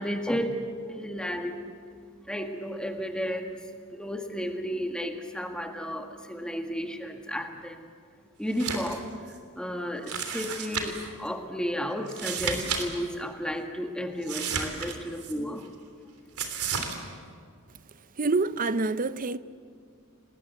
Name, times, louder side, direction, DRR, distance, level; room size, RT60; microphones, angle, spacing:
voice 1, 0.0-1.6 2.2-7.9 8.4-9.1 9.6-15.7, equal, 5° left, 1.8 m, -33 dB
sound 1, 8.5-9.0 9.3-9.4 10.1-11.1 12.1-12.8 13.1-13.2 14.2-15.3 16.4-17.0, right 6 dB, 85° right, 3.3 m, -32 dB
voice 2, 18.2-19.4, right 3 dB, 40° right, 0.7 m, -26 dB
28.5 x 19.5 x 8.3 m
head